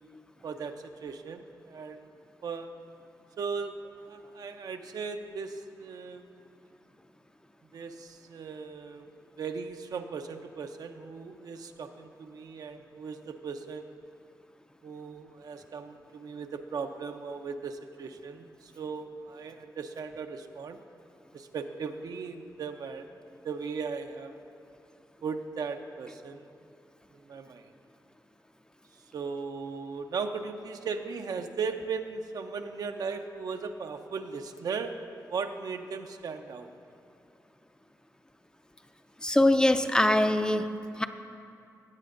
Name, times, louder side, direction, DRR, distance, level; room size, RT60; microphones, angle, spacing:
voice 1, 0.4-2.1 2.4-2.7 3.4-6.3 7.7-9.1 9.4-13.9 14.8-20.8 21.3-23.1 23.4-24.3 25.2-26.5 27.3-27.7 29.1-34.9 35.3-36.7, right 5 dB, 70° right, 6 dB, 0.5 m, -37 dB
voice 2, 39.2-41.0, left 1 dB, 10° left, 8 dB, 0.4 m, -23 dB
16.0 x 8.6 x 2.5 m, 2.6 s
cardioid pair, 65°, 7 cm